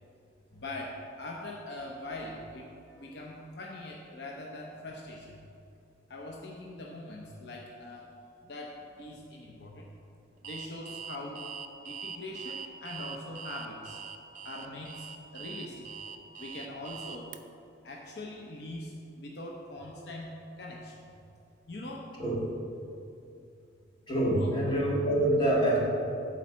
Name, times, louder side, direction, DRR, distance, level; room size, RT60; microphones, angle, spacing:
voice 1, 0.5-5.4 6.1-8.1 8.5-9.9 10.4-11.4 11.8-14.0 14.4-15.1 15.3-15.9 16.4-17.3 17.8-20.3 20.6-21.0 21.7-22.1 24.3-24.5, left 1 dB, 60° left, -1 dB, 0.7 m, -42 dB
Alarm, 10.4-17.4, right 7 dB, 40° right, 0.4 m, -42 dB
voice 2, 24.1-25.8, right 1 dB, 25° left, -4 dB, 1.6 m, -26 dB
8.5 x 4.2 x 7.2 m, 2.7 s
head